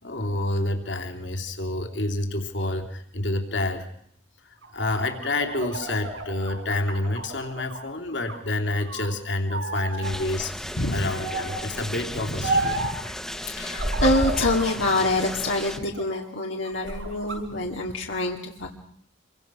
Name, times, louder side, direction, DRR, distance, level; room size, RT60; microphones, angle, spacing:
voice 1, 0.0-3.9 4.4-12.9 15.8-15.9, left 2 dB, 65° left, 4 dB, 3.2 m, -28 dB
sound 1, 4.6-7.8 8.2-9.1 9.5-10.1 11.1-11.7 12.4-13.0 13.7-14.8 15.3-16.2 16.7-17.4, right 2 dB, 75° right, 7.0 m, -30 dB
sound 2, 10.0-15.8, equal, 5° left, 1.2 m, -36 dB
voice 2, 10.8-11.1 13.1-18.7, left 2 dB, 85° left, 0 dB, 2.4 m, -26 dB
27.0 x 24.0 x 6.3 m, 0.70 s
head